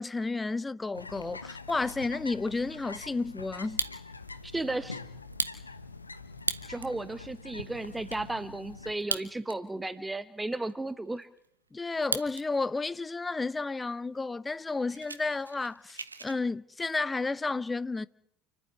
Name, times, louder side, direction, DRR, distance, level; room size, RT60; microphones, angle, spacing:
voice 1, 0.0-3.8 11.7-18.1, left 3 dB, 15° left, 0.9 m, -32 dB
sound 1, 0.9-8.9, left 3 dB, 85° left, 1.0 m, -45 dB
Fire, 3.5-4.3 4.7-4.8 5.2-7.0 7.5-7.6 7.7-8.2 8.9-9.8 10.1-10.2 10.7-12.4 12.8-13.2 13.8-13.9 14.1-14.3 14.6-16.4, right 4 dB, 85° right, 1.1 m, -36 dB
voice 2, 4.4-5.0 6.7-11.3, right 2 dB, 10° right, 1.2 m, -34 dB
29.0 x 11.5 x 10.0 m
figure-of-eight pair, 65°, 0 cm